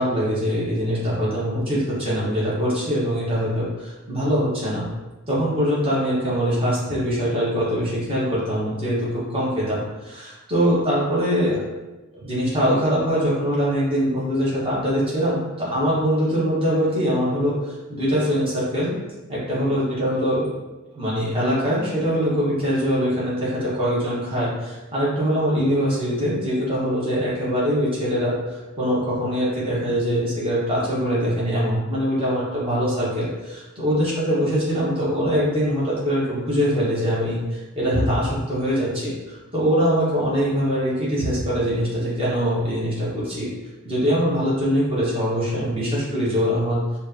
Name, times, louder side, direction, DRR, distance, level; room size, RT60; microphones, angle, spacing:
voice 1, 0.0-4.8 5.3-11.6 12.1-18.9 19.3-20.5 20.9-28.3 28.8-43.5 43.8-46.8, equal, 25° right, -8 dB, 1.3 m, -23 dB
4.7 x 2.7 x 2.8 m, 1.1 s
head